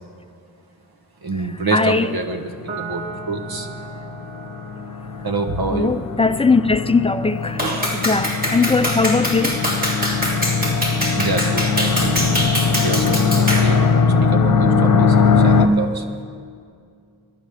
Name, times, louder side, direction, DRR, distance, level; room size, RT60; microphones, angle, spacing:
voice 1, 1.2-3.7 5.2-6.0 7.6-8.0 11.2-16.1, right 3 dB, 70° right, 1.3 m, -27 dB
voice 2, 1.7-2.1 5.7-7.6 8.0-9.6, left 4 dB, 15° left, 0.5 m, -19 dB
sound 1, 2.5-15.7, left 5 dB, 55° left, 1.0 m, -20 dB
Piano, 2.7-9.4, right 4 dB, 40° right, 1.9 m, -40 dB
Clapping, 7.6-13.7, equal, 25° right, 3.0 m, -24 dB
23.5 x 11.0 x 3.6 m
wide cardioid pair, 80°, 38 cm